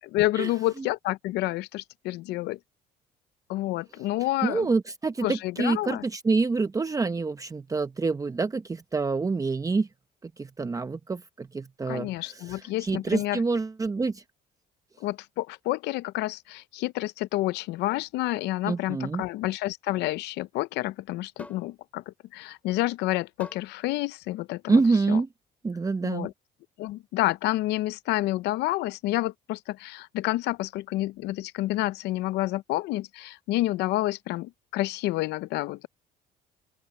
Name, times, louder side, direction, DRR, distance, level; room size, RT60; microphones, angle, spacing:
voice 1, 0.0-2.6 3.5-4.7 5.2-6.0 11.9-13.4 15.0-24.8 25.1-25.2 26.0-26.3 26.8-35.9, left 17 dB, 85° left, 0.6 m, -29 dB
voice 2, 4.4-9.9 10.2-14.2 18.6-19.2 24.7-25.3 25.6-26.3, right 4 dB, 20° right, 0.9 m, -27 dB
sound 1, 21.4-21.7 23.4-23.7 24.8-24.9, left 1 dB, 10° left, 7.1 m, -45 dB
open air
cardioid pair, 110°, 17 cm